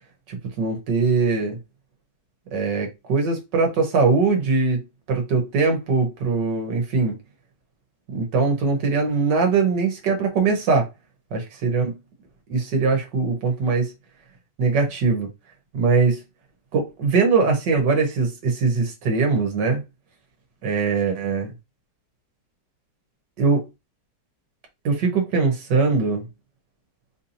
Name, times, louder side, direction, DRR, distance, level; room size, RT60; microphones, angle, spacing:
voice 1, 0.3-1.6 2.5-7.2 8.1-10.9 11.3-11.9 12.5-13.9 14.6-15.3 15.7-16.2 16.7-19.8 20.6-21.5 23.4-23.6 24.9-26.3, right 4 dB, 85° right, 1.8 m, -21 dB
4.4 x 2.8 x 2.7 m
omnidirectional pair, 1.8 m